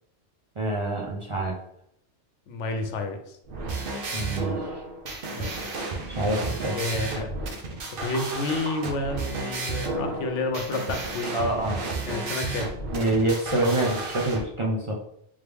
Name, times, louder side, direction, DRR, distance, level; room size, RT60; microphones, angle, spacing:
voice 1, 0.6-1.6 4.1-4.6 6.1-6.8 11.3-11.8 12.9-15.0, right 1 dB, 35° right, -3 dB, 0.5 m, -26 dB
voice 2, 2.5-3.4 5.3-5.7 6.7-7.3 8.0-11.5 12.1-12.7, left 3 dB, 85° left, 5 dB, 1.0 m, -30 dB
sound 1, 3.4-14.4, right 3 dB, 55° right, 0.9 m, -32 dB
3.6 x 3.2 x 3.4 m, 0.73 s
omnidirectional pair, 1.2 m